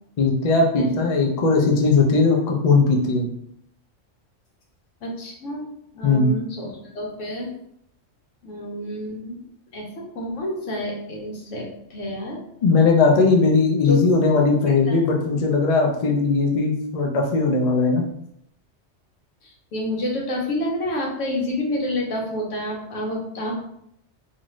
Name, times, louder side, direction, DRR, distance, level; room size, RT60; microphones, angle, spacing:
voice 1, 0.2-3.3 6.0-6.3 12.6-18.1, left 4 dB, 50° left, 0 dB, 0.4 m, -19 dB
voice 2, 5.0-7.5 8.4-9.4 9.7-12.4 13.8-14.0 14.9-15.0 19.4-23.6, left 1 dB, 85° left, -1 dB, 1.1 m, -29 dB
2.6 x 2.5 x 3.0 m, 0.73 s
omnidirectional pair, 1.2 m